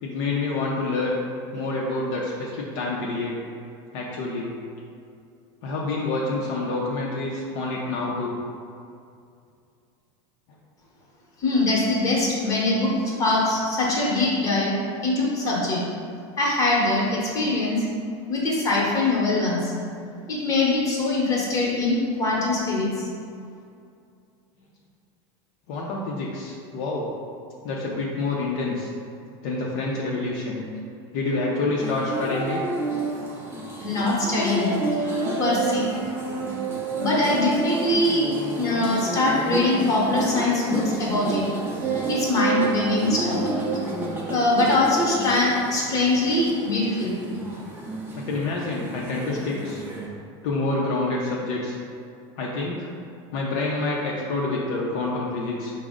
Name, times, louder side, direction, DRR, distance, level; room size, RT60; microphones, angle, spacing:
voice 1, 0.0-1.2 1.5-3.4 3.9-4.5 5.6-8.4 25.7-27.1 27.6-28.9 29.4-30.6 31.1-32.6 48.1-49.8 50.4-51.8 52.4-52.9 53.3-55.7, left 2 dB, 55° left, -3 dB, 0.5 m, -27 dB
voice 2, 11.4-14.7 15.0-15.8 16.4-17.8 18.3-19.7 20.3-23.1 33.8-34.8 35.4-35.9 37.0-41.4 42.1-43.4 44.3-47.2, left 2 dB, 25° left, -5 dB, 0.9 m, -22 dB
sound 1, 31.8-50.1, right 3 dB, 15° right, 0.5 m, -30 dB
4.9 x 2.0 x 3.5 m, 2.4 s
supercardioid pair, 150°, 14 cm